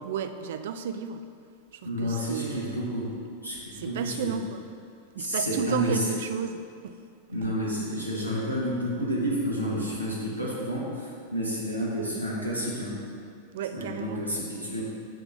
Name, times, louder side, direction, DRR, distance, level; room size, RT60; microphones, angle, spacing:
voice 1, 0.0-1.2 1.7-2.9 3.7-4.6 5.1-6.9 13.5-14.2, right 7 dB, 55° right, 9 dB, 0.3 m, -33 dB
voice 2, 1.8-3.1 3.4-4.3 5.2-6.0 7.3-13.0 13.7-14.8, equal, 85° right, -5 dB, 1.3 m, -30 dB
5.8 x 3.9 x 5.0 m, 2.4 s
figure-of-eight pair, 90°, 0 cm